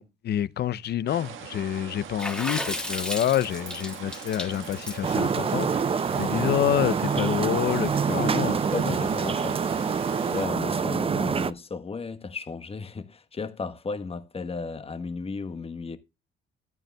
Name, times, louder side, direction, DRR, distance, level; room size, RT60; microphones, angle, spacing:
voice 1, 0.0-5.8 6.2-9.0, left 11 dB, 55° left, 0.5 m, -28 dB
sound 1, 1.1-10.5, right 7 dB, 85° right, 1.4 m, -41 dB
Water / Splash splatter, 2.2-6.7, left 1 dB, 5° left, 1.9 m, -34 dB
sound 2, 5.0-11.5, right 6 dB, 30° right, 0.5 m, -26 dB
voice 2, 8.7-9.6 10.3-16.0, left 4 dB, 30° left, 1.1 m, -34 dB
14.5 x 8.9 x 2.2 m
cardioid pair, 90°, 20 cm